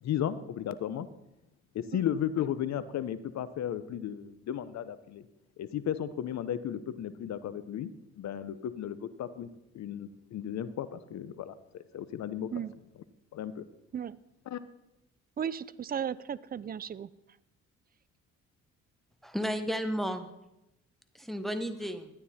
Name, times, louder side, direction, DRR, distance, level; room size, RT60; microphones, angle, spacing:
voice 1, 0.0-1.1 1.7-5.2 5.6-9.5 9.7-12.5 13.3-13.6 14.5-14.6, left 10 dB, 65° left, 14 dB, 0.8 m, -34 dB
voice 2, 15.4-17.1, right 8 dB, 30° right, 19 dB, 0.4 m, -35 dB
voice 3, 19.2-20.3 21.1-22.1, equal, ahead, 8 dB, 0.9 m, -33 dB
12.0 x 9.5 x 4.2 m, 0.88 s
cardioid pair, 90°, 30 cm